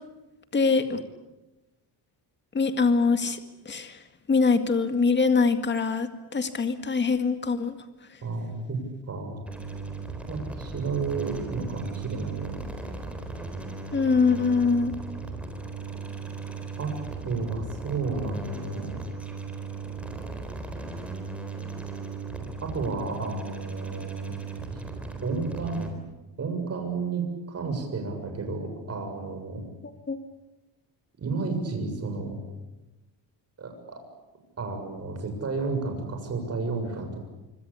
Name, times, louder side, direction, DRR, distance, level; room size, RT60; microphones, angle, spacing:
voice 1, 0.5-1.0 2.5-3.4 3.7-4.0 4.3-7.8 13.9-14.9 30.1-30.2, left 4 dB, 25° left, 8 dB, 2.0 m, -23 dB
voice 2, 8.2-8.8 9.1-9.4 10.2-12.6 16.8-16.9 17.2-19.0 22.6-24.4 24.7-24.8 25.2-26.0 26.4-29.6 31.2-32.4 33.6-34.0 34.6-37.2, right 4 dB, 35° right, 4 dB, 7.2 m, -32 dB
sound 1, 9.5-25.9, right 4 dB, 5° right, 4.0 m, -37 dB
26.0 x 25.0 x 8.6 m, 1.0 s
cardioid pair, 170°, 44 cm